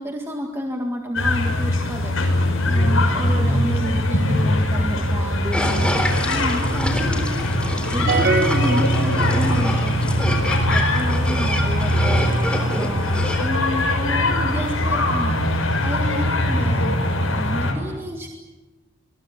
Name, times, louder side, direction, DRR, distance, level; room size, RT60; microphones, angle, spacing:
voice 1, 0.0-17.0 17.3-18.3, equal, 10° right, 1 dB, 2.0 m, -30 dB
sound 1, 1.1-17.7, left 1 dB, 75° left, 6.3 m, -21 dB
sound 2, 5.5-13.5, left 1 dB, 5° left, 3.6 m, -28 dB
sound 3, 8.1-9.8, right 4 dB, 50° right, 1.5 m, -24 dB
26.5 x 21.0 x 8.7 m, 1.2 s
head